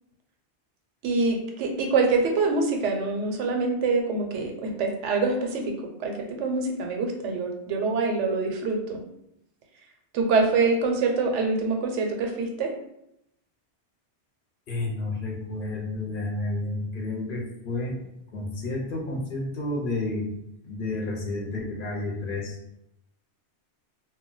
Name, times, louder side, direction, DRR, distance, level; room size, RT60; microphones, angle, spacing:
voice 1, 1.0-5.7 6.0-9.0 10.1-12.7, right 3 dB, 85° right, 2 dB, 0.9 m, -25 dB
voice 2, 14.7-18.0 18.3-20.3 20.6-22.6, left 2 dB, 55° left, 0 dB, 0.7 m, -31 dB
2.1 x 2.1 x 3.8 m, 0.80 s
omnidirectional pair, 1.2 m